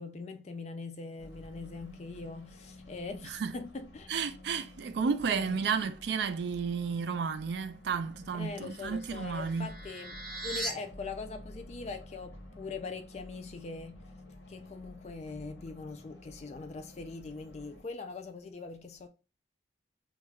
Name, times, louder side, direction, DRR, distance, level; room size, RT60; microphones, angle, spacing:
voice 1, 0.0-4.1 5.3-5.7 8.3-10.2 10.4-14.0 14.5-19.1, left 4 dB, 35° left, 0.3 m, -42 dB
sound 1, 1.2-17.8, left 1 dB, 80° left, 0.8 m, -51 dB
voice 2, 3.2-3.5 4.1-9.7, right 6 dB, 65° right, 0.3 m, -32 dB
sound 2, 8.5-10.7, right 2 dB, 5° left, 0.6 m, -40 dB
2.3 x 2.1 x 3.4 m
head